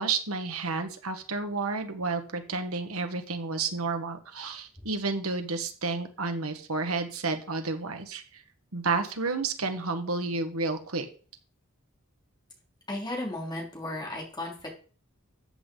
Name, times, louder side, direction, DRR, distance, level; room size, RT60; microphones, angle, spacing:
voice 1, 0.0-8.4 8.7-11.1, right 3 dB, 80° right, 7 dB, 1.5 m, -31 dB
voice 2, 12.9-14.7, left 1 dB, 20° left, -1 dB, 3.6 m, -35 dB
14.0 x 8.3 x 3.9 m, 0.40 s
head